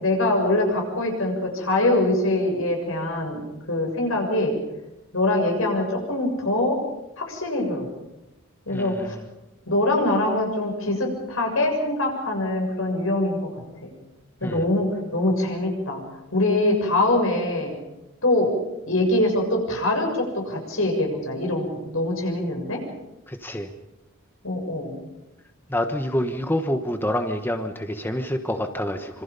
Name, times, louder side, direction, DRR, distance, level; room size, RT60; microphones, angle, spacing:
voice 1, 0.0-4.6 5.1-6.8 7.2-7.9 8.7-9.2 9.7-13.5 13.8-13.9 14.4-16.0 16.3-17.8 18.2-18.5 18.9-22.8 24.4-25.0, left 1 dB, 85° left, 2 dB, 7.1 m, -23 dB
voice 2, 8.7-9.2 14.4-14.6 23.3-23.7 25.7-29.2, left 1 dB, 10° left, 6 dB, 1.3 m, -27 dB
26.0 x 26.0 x 5.4 m, 0.97 s
head